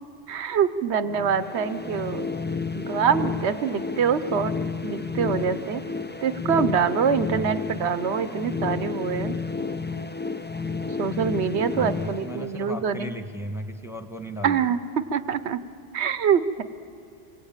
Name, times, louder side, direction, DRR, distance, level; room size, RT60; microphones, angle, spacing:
voice 1, 0.3-2.3 2.7-4.5 4.8-5.8 6.2-9.3 11.0-13.1 14.4-15.6 15.9-16.6, right 7 dB, 85° right, 12 dB, 1.2 m, -25 dB
sound 1, 1.1-13.0, left 4 dB, 15° left, 0.4 m, -31 dB
voice 2, 11.6-14.6, right 1 dB, 5° right, 7 dB, 1.4 m, -36 dB
28.5 x 23.5 x 9.0 m, 2.6 s
omnidirectional pair, 1.1 m